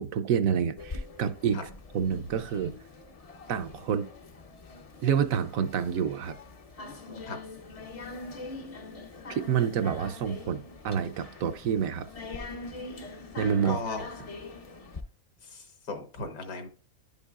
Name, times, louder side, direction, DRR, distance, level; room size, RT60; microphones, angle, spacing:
voice 1, 0.0-1.6 1.9-2.8 3.5-4.1 5.0-6.4 9.3-12.1 13.4-13.8, right 7 dB, 70° right, 1.0 m, -28 dB
sound 1, 0.8-15.0, left 3 dB, 45° left, 0.4 m, -43 dB
voice 2, 13.6-14.1 15.4-16.7, left 3 dB, 75° left, 1.7 m, -36 dB
11.0 x 5.4 x 2.4 m
omnidirectional pair, 1.6 m